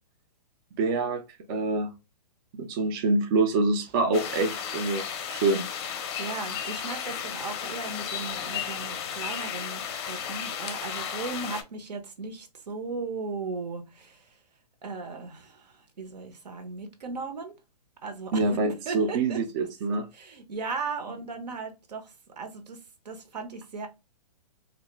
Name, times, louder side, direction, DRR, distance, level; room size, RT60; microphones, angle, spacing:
voice 1, 0.8-1.2 1.5-1.9 2.5-5.0 5.3-5.6 18.3-20.1, right 3 dB, 35° right, 0.4 m, -25 dB
sound 1, 4.1-11.6, left 8 dB, 40° left, 0.5 m, -34 dB
voice 2, 6.2-14.4 14.8-17.6 18.0-18.5 18.8-19.4 20.1-22.8 23.0-23.9, right 4 dB, 80° right, 0.9 m, -37 dB
2.3 x 2.1 x 2.9 m
hypercardioid pair, 140°, 21 cm